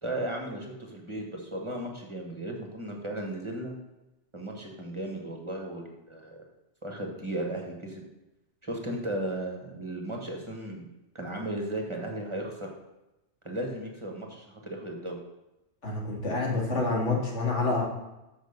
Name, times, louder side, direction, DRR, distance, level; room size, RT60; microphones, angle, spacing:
voice 1, 0.0-3.7 4.3-6.4 6.8-8.0 8.6-10.8 11.1-12.7 13.4-15.2, right 1 dB, 25° right, 1 dB, 1.4 m, -35 dB
voice 2, 15.8-17.8, left 3 dB, 80° left, -1 dB, 2.3 m, -27 dB
6.5 x 6.4 x 6.6 m, 0.95 s
omnidirectional pair, 1.2 m